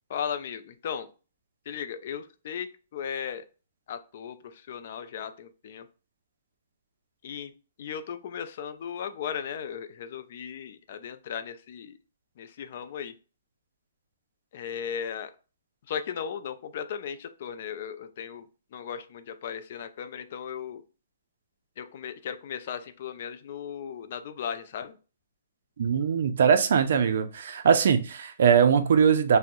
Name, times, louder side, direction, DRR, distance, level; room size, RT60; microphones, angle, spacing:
voice 1, 0.1-1.1 1.7-3.4 3.9-5.9 7.2-7.5 7.8-12.0 12.4-13.1 14.5-15.3 15.9-18.5 18.7-20.8 21.8-25.0, left 8 dB, 50° left, 10 dB, 0.3 m, -36 dB
voice 2, 25.8-29.4, right 7 dB, 65° right, 9 dB, 0.4 m, -21 dB
2.6 x 2.0 x 3.6 m, 0.35 s
hypercardioid pair, 160°, 0 cm